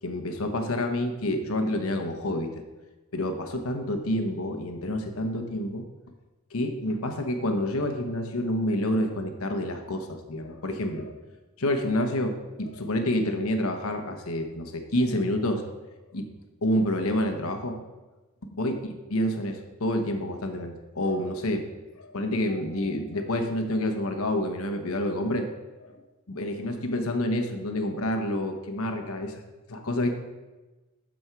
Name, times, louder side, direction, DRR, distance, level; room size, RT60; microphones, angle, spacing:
voice 1, 0.0-2.6 3.1-5.8 6.5-11.1 11.6-15.6 16.1-16.3 16.6-17.8 18.5-18.8 19.1-21.6 22.0-25.5 25.8-25.9 26.3-29.4 29.7-30.2, left 1 dB, 70° left, 5 dB, 1.1 m, -28 dB
12.5 x 5.3 x 4.6 m, 1.2 s
head